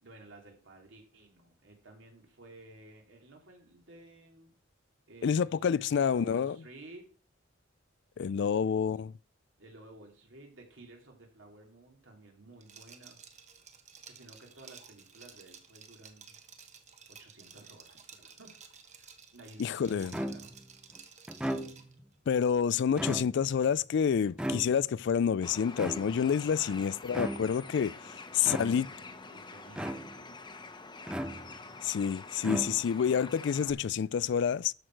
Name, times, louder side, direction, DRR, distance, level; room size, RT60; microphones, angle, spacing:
voice 1, 0.0-4.5 5.1-7.1 8.4-9.0 9.6-13.2 14.1-16.4 17.1-20.5 26.5-27.0 28.3-30.3 32.0-32.1, right 2 dB, 70° right, 3.0 m, -54 dB
voice 2, 5.2-6.6 8.2-9.1 19.6-20.1 22.3-28.9 31.8-34.7, left 7 dB, 65° left, 0.3 m, -28 dB
Liquid, 12.6-21.9, right 6 dB, 35° right, 1.2 m, -53 dB
sound 1, 20.1-20.7 21.3-22.0 22.8-23.6 24.4-25.1 25.8-26.4 27.1-27.7 28.4-29.0 29.7-30.3 31.1-31.8 32.4-33.1, right 1 dB, 5° right, 0.6 m, -37 dB
Bird, 25.4-33.7, left 3 dB, 25° left, 1.1 m, -47 dB
12.5 x 6.2 x 4.6 m
head